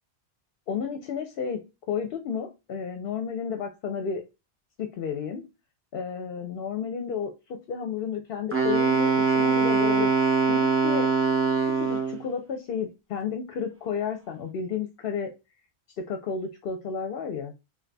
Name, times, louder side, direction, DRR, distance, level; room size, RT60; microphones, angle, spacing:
voice 1, 0.7-1.6 1.9-4.2 4.8-5.4 5.9-10.1 10.5-11.1 11.6-15.3 16.0-17.5, left 6 dB, 65° left, 6 dB, 0.8 m, -32 dB
Wind instrument woodwind instrument, 8.5-12.2, right 5 dB, 15° right, 0.6 m, -23 dB
3.9 x 2.6 x 2.2 m, 0.26 s
omnidirectional pair, 1.1 m